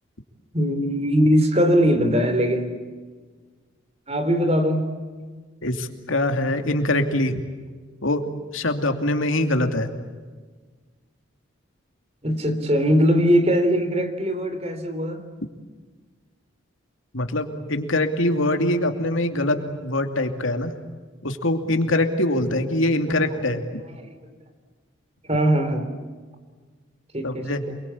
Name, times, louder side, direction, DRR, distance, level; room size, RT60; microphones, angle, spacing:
voice 1, 0.5-2.7 4.1-4.9 5.2-5.3 12.2-15.2 23.8-24.1 25.3-25.9 27.1-27.7, equal, 30° right, 9 dB, 3.3 m, -21 dB
voice 2, 5.6-7.4 8.0-8.2 8.5-9.9 17.1-20.7 21.2-23.6 27.2-27.6, left 1 dB, 80° left, 6 dB, 2.7 m, -23 dB
28.5 x 23.0 x 8.6 m, 1.4 s
head